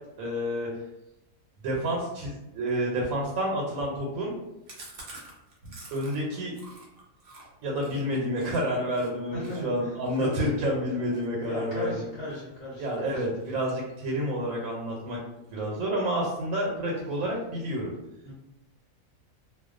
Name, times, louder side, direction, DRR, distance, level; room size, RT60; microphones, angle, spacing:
voice 1, 0.2-0.7 1.6-4.3 5.6-6.5 7.6-11.9 12.8-15.2 15.5-17.9, equal, 85° right, -2 dB, 1.0 m, -29 dB
Chewing mastication, 4.7-8.6 8.9-9.1 9.4-12.4 12.8-13.1 13.4-14.3 14.6-14.7 15.0-15.1 15.4-15.9, right 2 dB, 55° right, 0.7 m, -49 dB
voice 2, 9.3-10.7 10.9-13.6 18.2-18.3, left 1 dB, 60° left, -8 dB, 0.9 m, -38 dB
2.3 x 2.2 x 2.4 m, 0.93 s
omnidirectional pair, 1.4 m